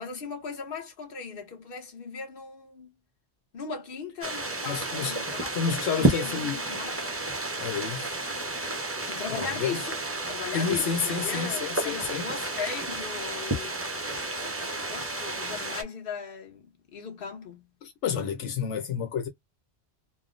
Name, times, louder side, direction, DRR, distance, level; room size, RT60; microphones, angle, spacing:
voice 1, 0.0-2.9 3.5-7.1 9.1-10.0 10.2-13.8 14.4-17.6, left 6 dB, 55° left, 1.2 m, -38 dB
sound 1, 4.2-15.8, right 2 dB, 20° right, 0.4 m, -31 dB
voice 2, 4.7-5.2 5.5-6.6 7.6-8.1 9.3-9.8 10.5-12.3 17.8-19.3, left 6 dB, 90° left, 1.0 m, -30 dB
3.5 x 2.1 x 2.4 m
omnidirectional pair, 1.2 m